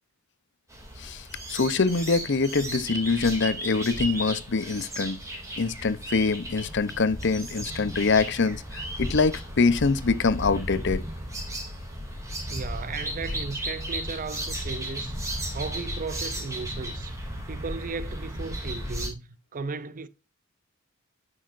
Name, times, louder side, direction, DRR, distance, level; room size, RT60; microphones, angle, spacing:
sound 1, 0.7-19.1, right 1 dB, 15° right, 2.5 m, -35 dB
voice 1, 1.5-5.2 5.6-11.0, left 4 dB, 55° left, 0.7 m, -24 dB
voice 2, 12.5-20.1, right 4 dB, 40° right, 0.6 m, -36 dB
9.8 x 6.5 x 2.5 m
head